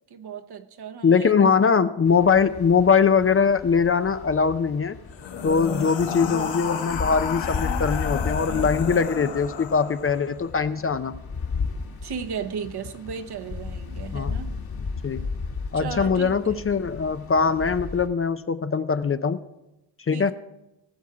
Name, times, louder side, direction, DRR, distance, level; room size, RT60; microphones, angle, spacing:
voice 1, 0.1-1.7 5.8-6.5 8.5-8.7 12.0-14.5 15.7-16.6 20.1-20.3, right 6 dB, 60° right, 6 dB, 1.1 m, -36 dB
voice 2, 1.0-5.0 5.4-11.1 14.1-14.3 15.0-15.2 15.7-19.4 20.1-20.3, left 5 dB, 30° left, 11 dB, 0.6 m, -21 dB
sound 1, 2.1-18.1, left 4 dB, 50° left, 1.9 m, -34 dB
sound 2, 5.1-10.3, left 7 dB, 80° left, 1.3 m, -32 dB
18.0 x 7.2 x 4.9 m, 0.94 s
cardioid pair, 85°, 45 cm